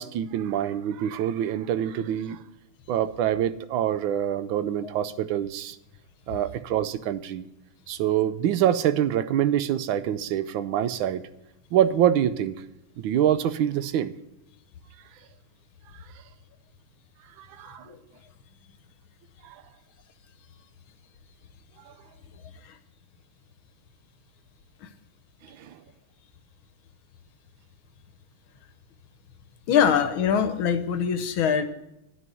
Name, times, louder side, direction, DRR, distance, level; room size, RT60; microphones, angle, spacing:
voice 1, 0.0-2.4 2.9-5.8 6.3-7.5 7.9-11.3 11.7-12.6 13.0-14.1 17.4-17.9 19.4-19.5 21.9-22.0 25.5-25.7, right 10 dB, 75° right, 13 dB, 1.4 m, -25 dB
voice 2, 29.7-31.7, left 7 dB, 75° left, 9 dB, 1.7 m, -23 dB
10.5 x 6.4 x 9.1 m, 0.86 s
omnidirectional pair, 2.3 m